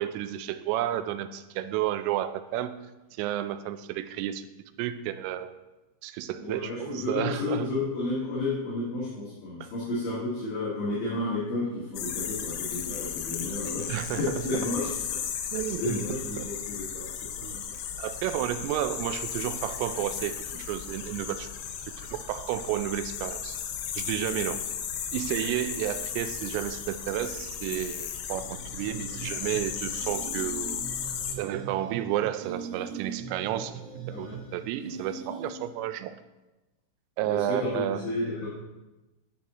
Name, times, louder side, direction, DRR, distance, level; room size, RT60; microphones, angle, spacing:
voice 1, 0.0-2.8 3.1-4.5 4.8-5.6 6.0-7.7 9.6-9.7 13.9-14.4 15.5-16.1 16.4-16.5 17.4-17.7 18.0-21.5 22.0-23.6 24.0-24.6 25.1-30.8 31.4-33.8 34.1-36.1 37.2-38.1, right 12 dB, 90° right, 11 dB, 3.2 m, -31 dB
voice 2, 6.4-15.2 15.6-17.1 34.1-34.4 37.2-38.5, left 2 dB, 60° left, -7 dB, 2.9 m, -32 dB
sound 1, 12.0-31.4, left 8 dB, 85° left, 3.2 m, -35 dB
sound 2, 28.4-35.9, right 5 dB, 70° right, 4.0 m, -41 dB
11.0 x 6.6 x 2.9 m, 1.0 s
omnidirectional pair, 5.7 m